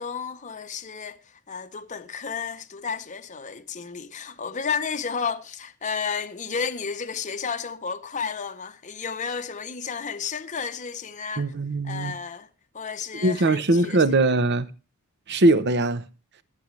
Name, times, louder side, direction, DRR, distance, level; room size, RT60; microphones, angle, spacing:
voice 1, 0.0-11.5 11.8-12.5 12.7-14.0, left 6 dB, 35° left, 0.8 m, -32 dB
voice 2, 11.4-12.1 13.2-14.7 15.3-16.0, right 2 dB, 50° right, 0.8 m, -21 dB
22.0 x 8.4 x 3.2 m
head